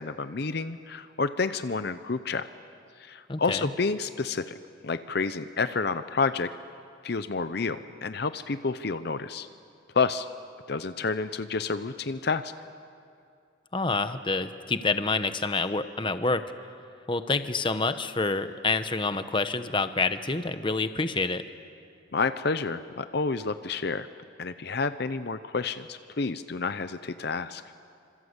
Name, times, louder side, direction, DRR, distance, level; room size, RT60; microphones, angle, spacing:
voice 1, 0.0-2.4 3.0-4.6 4.8-6.5 7.0-9.5 9.9-10.3 10.7-12.5 22.1-24.1 24.4-27.6, left 4 dB, 55° left, 11 dB, 0.7 m, -29 dB
voice 2, 3.3-3.7 13.7-16.4 17.1-21.4, left 3 dB, 25° left, 10 dB, 0.9 m, -27 dB
28.0 x 26.0 x 8.1 m, 2.4 s
head